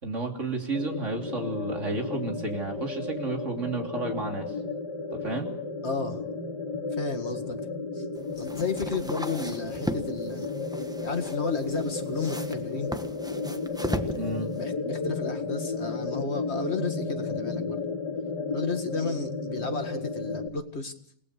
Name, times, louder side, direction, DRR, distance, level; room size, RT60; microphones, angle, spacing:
voice 1, 0.0-4.5 5.1-5.5 14.2-14.5, right 3 dB, 40° right, 3 dB, 3.6 m, -32 dB
sound 1, 0.7-20.5, left 3 dB, 70° left, 3.0 m, -33 dB
voice 2, 5.8-6.2 6.9-7.6 7.9-8.0 8.4-10.5 11.0-12.9 14.6-17.8 18.5-20.9, left 4 dB, 40° left, 6 dB, 2.2 m, -32 dB
sound 2, 8.2-14.6, equal, 5° right, 0.9 m, -37 dB
28.5 x 19.5 x 6.8 m, 0.64 s
omnidirectional pair, 1.9 m